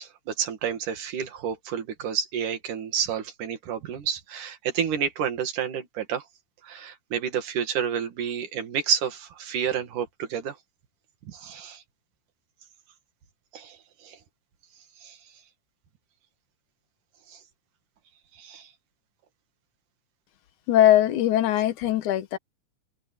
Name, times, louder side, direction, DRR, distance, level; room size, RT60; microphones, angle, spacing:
voice 1, 0.0-6.3 6.6-10.6 11.3-11.8 13.5-14.2 15.0-15.2 17.3-17.4 18.3-18.7, right 8 dB, 85° right, 3.5 m, -30 dB
voice 2, 20.7-22.4, left 12 dB, 80° left, 2.5 m, -20 dB
open air
omnidirectional pair, 3.5 m